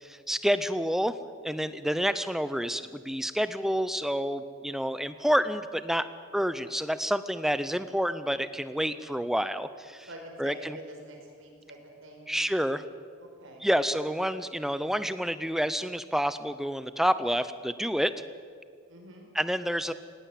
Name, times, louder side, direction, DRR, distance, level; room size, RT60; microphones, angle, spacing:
voice 1, 0.0-1.1 1.4-6.1 6.3-10.1 10.4-10.8 12.3-12.8 13.6-18.1 19.3-19.9, equal, ahead, 13 dB, 0.6 m, -28 dB
voice 2, 10.1-12.3 13.2-13.7 18.9-19.3, right 1 dB, 65° right, 1 dB, 5.2 m, -46 dB
18.5 x 18.5 x 8.5 m, 2.2 s
head